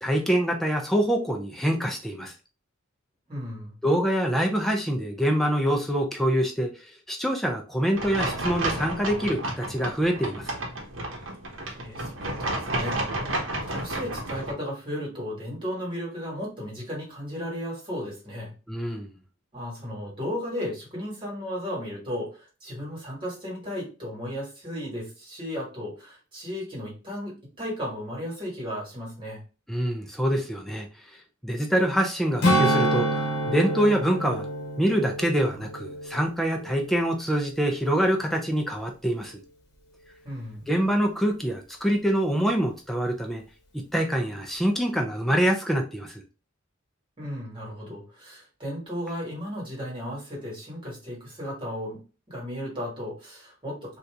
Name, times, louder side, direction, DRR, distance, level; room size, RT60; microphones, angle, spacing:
voice 1, 0.0-2.3 3.8-6.7 7.1-10.5 18.7-19.1 29.7-30.9 31.4-34.5 34.8-39.4 40.7-43.4 43.7-46.2, equal, ahead, 1 dB, 0.5 m, -25 dB
voice 2, 3.3-3.7 11.6-13.3 13.6-18.5 19.5-29.4 40.2-40.7 47.2-52.0 52.3-54.0, equal, 25° right, -3 dB, 1.7 m, -35 dB
sound 1, 7.9-14.5, right 1 dB, 65° right, 1.0 m, -31 dB
Strum, 32.4-37.1 37.5-37.7, right 1 dB, 55° left, 1.1 m, -27 dB
2.8 x 2.5 x 3.4 m, 0.33 s
head